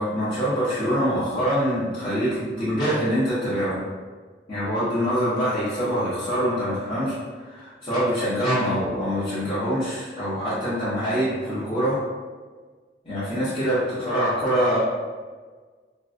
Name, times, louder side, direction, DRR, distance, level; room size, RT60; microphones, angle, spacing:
voice 1, 0.0-3.8 4.5-12.0 13.0-14.8, equal, 30° left, -15 dB, 0.9 m, -24 dB
3.7 x 2.3 x 2.5 m, 1.5 s
head